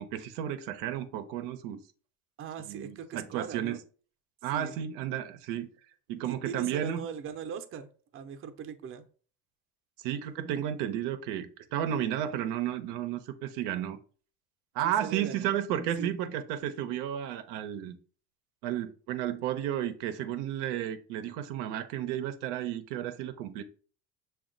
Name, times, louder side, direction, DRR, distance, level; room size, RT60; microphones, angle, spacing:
voice 1, 0.0-1.8 2.7-3.8 4.4-5.7 6.1-7.0 10.0-14.0 14.7-18.0 18.6-23.6, right 10 dB, 90° right, 0.6 m, -33 dB
voice 2, 2.4-3.8 4.5-4.7 6.2-7.9 8.1-9.0 14.8-15.5 16.0-16.1, right 7 dB, 40° right, 0.6 m, -40 dB
5.9 x 2.3 x 3.8 m
cardioid pair, 130°, 31 cm